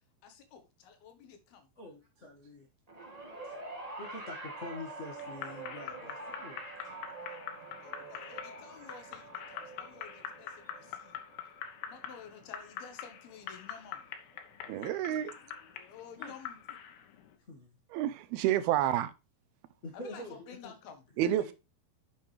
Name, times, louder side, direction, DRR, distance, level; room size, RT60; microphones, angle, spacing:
voice 1, 0.2-1.7 3.4-3.6 7.8-11.2 11.9-14.0 14.8-16.8 19.9-21.0, left 7 dB, 75° left, 3.1 m, -52 dB
voice 2, 1.8-2.7 3.4-3.5 4.0-7.1 16.2-16.3 17.5-17.8 19.8-20.7 21.2-21.5, left 1 dB, 45° left, 0.8 m, -46 dB
sound 1, 2.9-13.3 14.3-14.4, right 2 dB, 30° right, 0.7 m, -46 dB
sound 2, 5.2-17.4, left 9 dB, 90° left, 3.4 m, -45 dB
voice 3, 14.7-15.3 17.9-19.1 21.2-21.5, right 12 dB, 80° right, 2.5 m, -29 dB
9.7 x 6.9 x 3.3 m
omnidirectional pair, 4.6 m